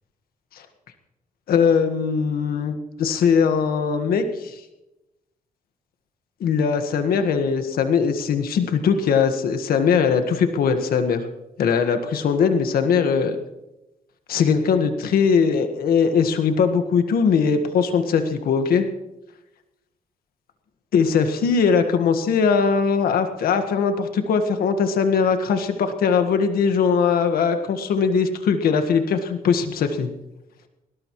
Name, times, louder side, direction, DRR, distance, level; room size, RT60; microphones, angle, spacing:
voice 1, 1.5-4.6 6.4-11.2 11.6-13.4 14.3-18.9 20.9-30.1, left 6 dB, 85° left, 7 dB, 1.6 m, -20 dB
20.5 x 19.5 x 3.2 m, 0.94 s
cardioid pair, 110°, 15 cm